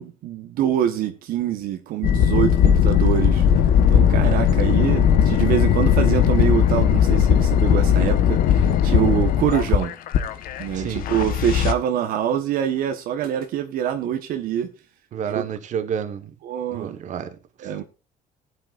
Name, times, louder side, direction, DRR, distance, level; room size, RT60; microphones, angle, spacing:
voice 1, 0.0-3.5 3.9-9.9 10.6-14.7 15.2-15.4 16.4-16.9 17.6-17.8, right 10 dB, 65° right, 1.3 m, -25 dB
sound 1, 2.0-11.7, left 8 dB, 60° left, 1.2 m, -18 dB
voice 2, 10.7-11.0 15.1-16.3 16.7-17.7, right 8 dB, 50° right, 1.4 m, -30 dB
19.5 x 9.0 x 2.5 m
cardioid pair, 125°, 16 cm